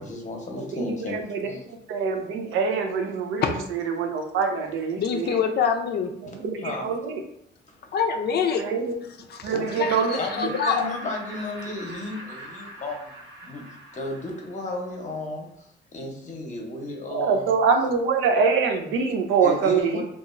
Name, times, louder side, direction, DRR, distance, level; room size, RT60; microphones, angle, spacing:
voice 1, 0.0-1.6 6.3-6.9 7.7-8.0 9.5-9.6 10.1-13.1 13.4-13.6 13.9-17.5 19.4-20.0, left 2 dB, 40° left, 1 dB, 0.8 m, -34 dB
voice 2, 0.6-1.5 1.9-5.4 6.2-7.2 8.6-9.0 9.4-10.2 17.1-20.0, right 5 dB, 90° right, 4 dB, 0.5 m, -24 dB
voice 3, 5.0-6.1 7.9-8.6 9.3-9.4 9.8-10.8, left 6 dB, 55° left, 5 dB, 0.4 m, -25 dB
Laughter, 9.7-14.9, right 1 dB, 75° right, 0.8 m, -42 dB
2.9 x 2.4 x 2.4 m, 0.78 s
cardioid pair, 90°, 20 cm